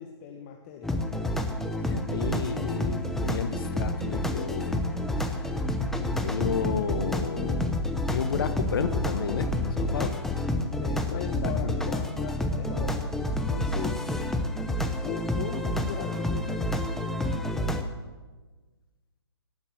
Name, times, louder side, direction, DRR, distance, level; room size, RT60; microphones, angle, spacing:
voice 1, 0.0-1.3 10.8-14.0 15.0-16.6, left 8 dB, 30° left, 2 dB, 1.5 m, -39 dB
sound 1, 0.8-17.8, left 1 dB, ahead, 0.8 m, -29 dB
voice 2, 1.8-4.8 5.3-5.4 6.2-7.7 8.1-10.1 11.1-11.8, left 6 dB, 55° left, 10 dB, 1.4 m, -32 dB
18.0 x 8.3 x 8.0 m, 1.3 s
figure-of-eight pair, 135°, 14 cm